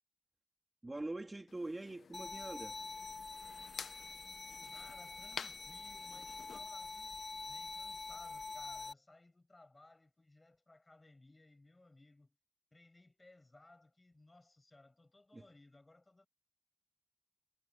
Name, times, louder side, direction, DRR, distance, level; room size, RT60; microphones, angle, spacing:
voice 1, 0.8-2.8 15.3-15.4, right 2 dB, 25° right, 2.5 m, -43 dB
sound 1, 1.5-6.6, left 6 dB, 85° left, 0.7 m, -51 dB
sound 2, 2.1-8.9, left 3 dB, 45° left, 1.6 m, -46 dB
voice 2, 4.7-12.4 12.7-16.3, left 2 dB, 25° left, 5.7 m, -62 dB
wide cardioid pair, 115°, 0 cm